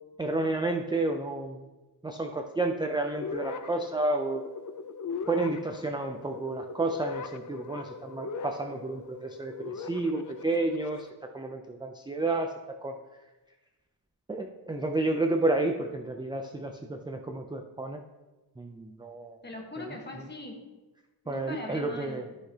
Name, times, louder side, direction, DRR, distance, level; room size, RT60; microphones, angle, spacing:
voice 1, 0.2-1.7 2.0-4.5 5.3-11.1 11.3-12.5 12.8-12.9 14.3-18.0 18.6-19.4 19.8-19.9 21.3-22.2, right 2 dB, 10° right, 4 dB, 0.3 m, -31 dB
sound 1, 3.1-11.1, left 5 dB, 50° left, 0.5 m, -40 dB
voice 2, 19.4-20.6 21.2-22.3, left 2 dB, 25° left, 0 dB, 1.3 m, -41 dB
13.0 x 5.9 x 2.8 m, 1.1 s
wide cardioid pair, 175°, 40 cm